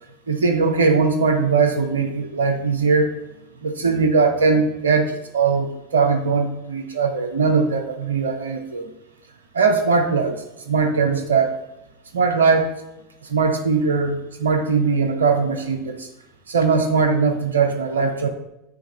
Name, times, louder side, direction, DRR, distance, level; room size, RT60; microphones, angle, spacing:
voice 1, 0.3-3.2 3.6-8.9 9.5-11.6 12.1-12.7 13.2-16.1 16.5-18.3, right 4 dB, 80° right, 6 dB, 0.7 m, -20 dB
6.9 x 3.4 x 4.2 m, 0.88 s
figure-of-eight pair, 80°, 0 cm